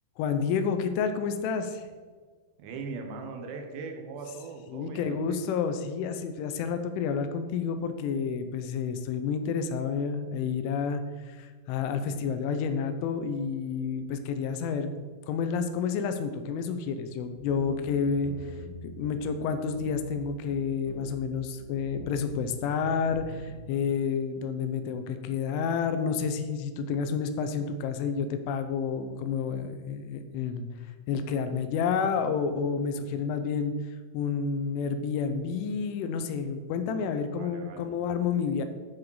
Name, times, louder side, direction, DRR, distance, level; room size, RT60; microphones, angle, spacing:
voice 1, 0.2-1.8 4.7-18.3 18.8-30.7 31.1-33.7 34.1-38.7, left 6 dB, 90° left, 8 dB, 3.2 m, -30 dB
voice 2, 2.6-5.4 37.3-37.9, right 4 dB, 75° right, 3 dB, 3.0 m, -40 dB
sound 1, 17.2-18.7 19.0-19.4 19.7-20.2 20.5-22.4 22.7-23.5, equal, 55° right, 4.1 m, -41 dB
12.5 x 5.0 x 4.8 m, 1.5 s
omnidirectional pair, 5.5 m